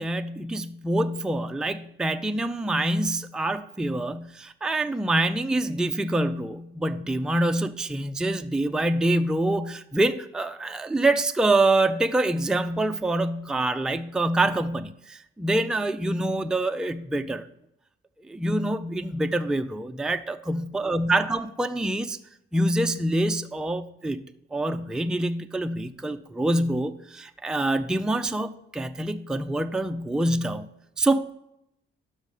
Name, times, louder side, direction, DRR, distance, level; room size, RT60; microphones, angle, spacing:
voice 1, 0.0-17.5 18.2-22.2 22.5-24.2 24.5-30.7 31.0-31.3, right 1 dB, 5° right, 7 dB, 0.4 m, -26 dB
6.3 x 5.2 x 6.4 m, 0.80 s
cardioid pair, 90°, 20 cm